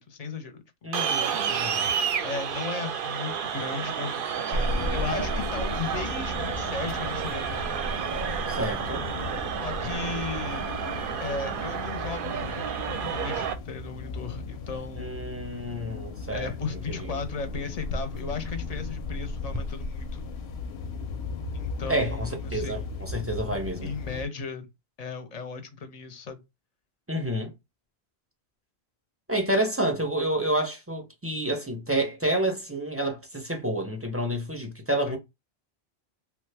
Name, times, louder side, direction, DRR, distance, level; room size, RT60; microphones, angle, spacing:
voice 1, 0.0-1.0 2.2-7.7 9.6-10.6 11.2-15.2 16.3-20.2 21.5-22.9 23.8-24.7 25.0-26.4 35.1-35.2, left 4 dB, 45° left, 0.6 m, -36 dB
voice 2, 0.8-1.9 8.5-9.0 15.0-16.5 16.9-17.2 21.9-23.9 27.1-27.5 29.3-35.2, right 1 dB, 15° right, 0.5 m, -29 dB
sound 1, 0.9-13.5, right 7 dB, 65° right, 0.7 m, -31 dB
sound 2, 4.5-24.3, left 3 dB, 85° left, 0.8 m, -35 dB
3.1 x 2.2 x 3.3 m
omnidirectional pair, 1.1 m